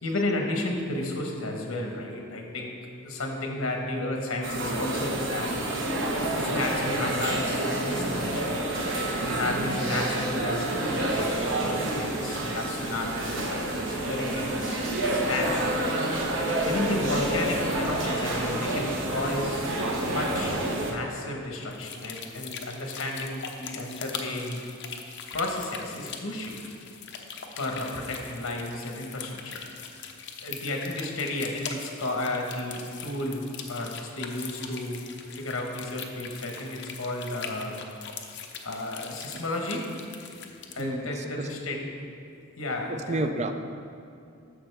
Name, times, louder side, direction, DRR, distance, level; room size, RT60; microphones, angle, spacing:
voice 1, 0.0-2.8 3.0-5.7 6.3-8.4 9.2-14.8 15.1-15.8 16.6-19.7 20.1-24.6 25.3-26.6 27.6-29.6 30.4-35.0 35.4-37.9 38.6-39.9 40.7-42.0 42.6-43.2, left 2 dB, 75° left, 1 dB, 1.2 m, -32 dB
sound 1, 4.4-20.9, right 1 dB, 60° right, 1.1 m, -28 dB
sound 2, 21.7-40.8, left 6 dB, 60° left, 0.7 m, -41 dB
voice 2, 40.8-41.1 41.4-41.5 42.9-43.5, right 2 dB, 35° right, 7 dB, 0.4 m, -30 dB
11.0 x 6.6 x 3.4 m, 2.5 s
head